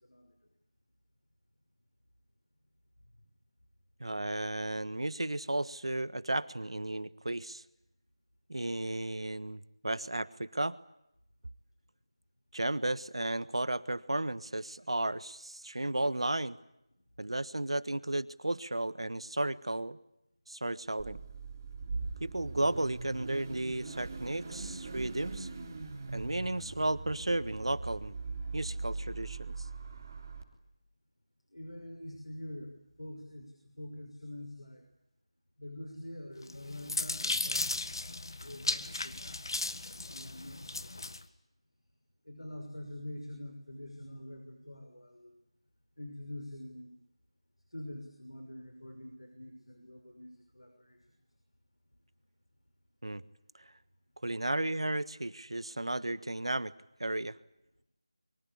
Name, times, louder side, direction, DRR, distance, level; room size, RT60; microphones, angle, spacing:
voice 1, 4.0-7.6 8.5-10.8 12.5-16.6 17.2-20.0 20.5-21.2 22.2-25.5 26.1-28.1 28.5-29.5 53.0-53.2 53.6-53.7 54.2-56.7 57.0-57.4, right 1 dB, 70° right, 16 dB, 1.4 m, -34 dB
Car / Idling / Accelerating revving vroom, 21.0-30.4, right 3 dB, 30° right, 3.3 m, -41 dB
voice 2, 31.5-34.8 35.6-39.4 39.7-41.0 42.3-45.3 46.0-47.0 47.7-51.0, left 1 dB, 80° left, 4 dB, 5.9 m, -46 dB
sound 1, 36.5-41.2, left 2 dB, 50° left, 1.7 m, -36 dB
24.5 x 24.5 x 8.4 m, 0.83 s
figure-of-eight pair, 165°, 3 cm